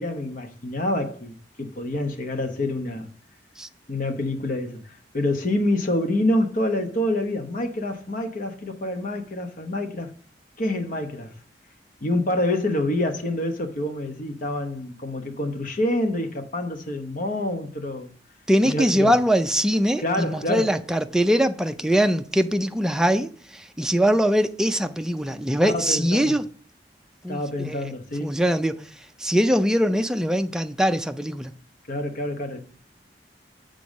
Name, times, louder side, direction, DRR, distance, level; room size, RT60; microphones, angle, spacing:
voice 1, 0.0-3.1 3.9-10.1 10.6-11.3 12.0-18.1 18.6-19.1 20.0-20.7 25.6-26.4 27.3-28.4 31.9-32.6, left 1 dB, 50° left, 1.0 m, -27 dB
voice 2, 18.5-26.5 27.2-27.9 28.2-28.8 29.2-31.5, equal, 5° right, 0.4 m, -22 dB
6.9 x 3.8 x 6.2 m
head